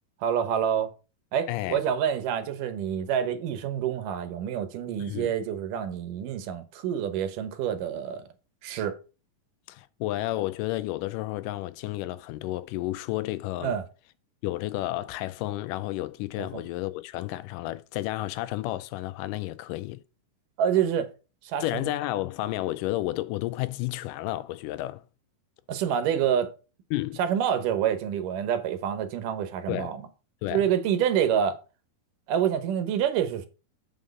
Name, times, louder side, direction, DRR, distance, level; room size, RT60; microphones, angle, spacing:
voice 1, 0.2-0.9 1.3-8.2 8.6-9.0 13.6-13.8 16.4-16.6 20.6-21.1 21.4-21.9 25.7-26.5 27.2-30.1 30.5-31.6 32.3-33.5, right 9 dB, 75° right, 2.6 m, -27 dB
voice 2, 1.5-1.8 5.0-5.3 9.7-13.8 14.4-20.0 21.6-25.0 26.9-27.2 29.7-29.9 30.4-30.6, left 16 dB, 80° left, 2.1 m, -31 dB
7.6 x 6.2 x 5.3 m
omnidirectional pair, 3.8 m